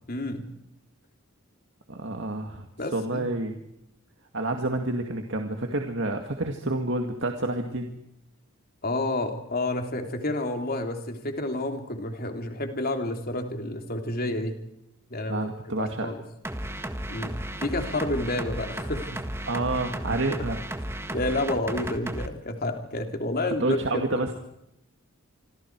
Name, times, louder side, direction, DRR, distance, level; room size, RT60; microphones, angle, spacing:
voice 1, 0.1-0.4 2.8-3.3 8.8-14.5 15.1-15.5 15.8-16.2 17.1-17.3 17.6-19.2 21.1-23.8 24.1-24.2, left 1 dB, 45° left, 4 dB, 3.2 m, -29 dB
voice 2, 1.9-2.7 2.9-3.6 4.3-8.0 15.3-16.1 19.5-20.6 23.6-24.3, right 2 dB, 60° right, 4 dB, 2.1 m, -29 dB
sound 1, 16.4-22.3, right 1 dB, 10° right, 1.5 m, -34 dB
27.5 x 25.0 x 4.8 m, 0.82 s
head